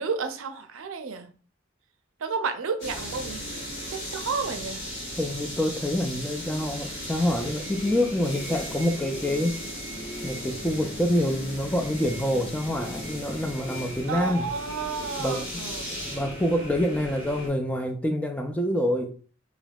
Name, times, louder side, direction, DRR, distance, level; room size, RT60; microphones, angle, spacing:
voice 1, 0.0-1.3 2.2-3.5 3.9-4.8 14.1-15.9, right 5 dB, 80° right, 0.5 m, -31 dB
sound 1, 2.8-17.5, equal, 60° left, 1.5 m, -36 dB
voice 2, 5.2-9.6 10.2-14.5 15.2-15.6 15.9-19.2, left 1 dB, 5° left, 0.3 m, -26 dB
3.4 x 2.9 x 2.3 m
head